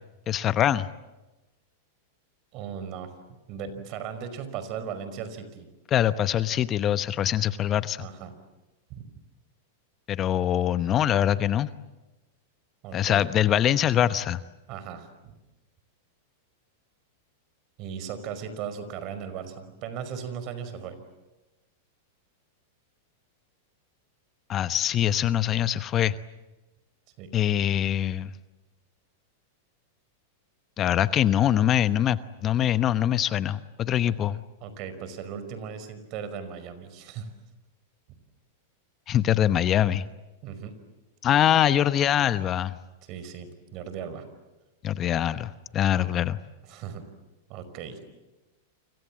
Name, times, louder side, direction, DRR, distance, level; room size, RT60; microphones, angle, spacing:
voice 1, 0.3-0.9 5.9-8.1 10.1-11.7 12.9-14.4 24.5-26.1 27.3-28.3 30.8-34.4 39.1-40.0 41.2-42.7 44.8-46.4, left 11 dB, 35° left, 13 dB, 1.0 m, -23 dB
voice 2, 2.5-5.7 8.0-8.3 8.9-9.0 12.8-13.3 14.7-15.3 17.8-21.0 27.2-27.3 34.0-34.1 34.6-37.3 40.4-40.8 43.0-44.3 46.7-47.1 47.5-48.0, right 7 dB, 45° right, 11 dB, 5.3 m, -37 dB
29.5 x 26.0 x 7.6 m, 1.1 s
hypercardioid pair, 115°, 0 cm